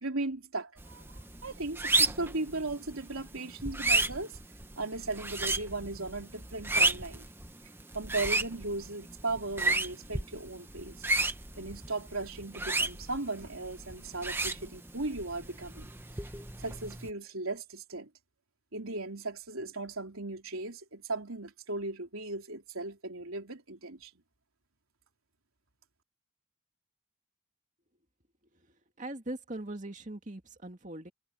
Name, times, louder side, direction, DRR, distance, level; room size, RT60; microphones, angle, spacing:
voice 1, 0.0-4.4 4.8-7.2 7.9-11.0 11.6-15.9 16.6-18.1 18.7-24.1, right 2 dB, 85° right, 3.5 m, -37 dB
sound 1, 0.8-17.1, right 2 dB, 10° right, 1.0 m, -33 dB
voice 2, 29.0-31.1, right 1 dB, 35° right, 2.3 m, -40 dB
head